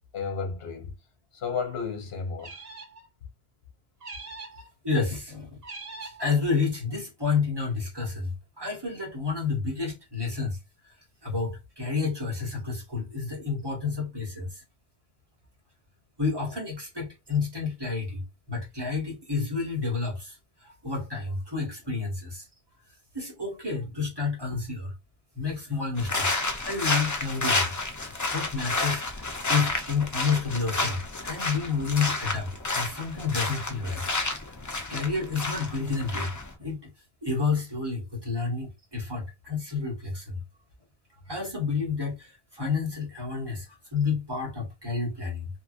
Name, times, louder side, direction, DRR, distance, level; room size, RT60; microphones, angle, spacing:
voice 1, 0.1-0.9 1.3-2.7, left 5 dB, 70° left, 1.1 m, -32 dB
sound 1, 2.4-3.1 4.0-4.7 5.6-6.3, right 3 dB, 45° right, 0.7 m, -42 dB
voice 2, 4.8-5.6 6.0-10.6 11.2-14.6 16.2-22.5 23.1-24.9 25.3-27.7 28.3-34.0 34.9-36.3 36.6-36.9 37.2-40.4 41.3-45.5, left 4 dB, 25° right, 1.4 m, -30 dB
sound 2, 26.0-36.5, left 2 dB, 30° left, 0.3 m, -30 dB
2.8 x 2.7 x 2.5 m
omnidirectional pair, 1.1 m